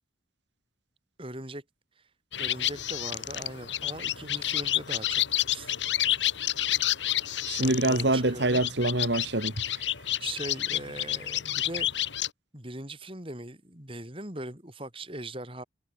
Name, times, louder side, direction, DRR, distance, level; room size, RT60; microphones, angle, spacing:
voice 1, 1.2-1.6 2.4-5.7 7.6-8.6 10.2-11.9 12.5-15.6, right 1 dB, 30° right, 4.7 m, -40 dB
sound 1, 2.3-12.3, left 12 dB, 80° left, 2.8 m, -30 dB
voice 2, 7.4-9.9, right 2 dB, 75° right, 2.6 m, -26 dB
head